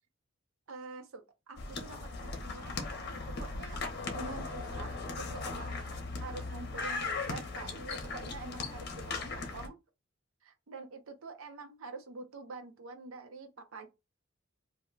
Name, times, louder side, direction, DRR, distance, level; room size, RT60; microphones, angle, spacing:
voice 1, 0.7-3.8 4.1-6.0 6.2-9.8 10.4-13.9, right 3 dB, 90° right, 0.6 m, -46 dB
sound 1, 1.6-9.7, left 3 dB, 55° left, 0.7 m, -38 dB
2.6 x 2.1 x 3.8 m
head